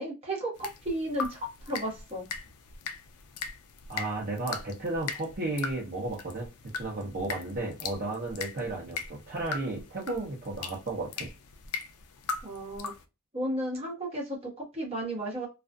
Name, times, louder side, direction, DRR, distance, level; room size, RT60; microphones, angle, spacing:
voice 1, 0.0-2.3 12.4-12.9 13.3-15.5, right 1 dB, 25° right, -3 dB, 1.1 m, -34 dB
sound 1, 0.6-13.0, left 5 dB, 90° left, 0.4 m, -40 dB
voice 2, 3.9-6.5 6.7-11.3, right 2 dB, 40° right, -4 dB, 0.6 m, -33 dB
2.4 x 2.3 x 2.3 m, 0.27 s
head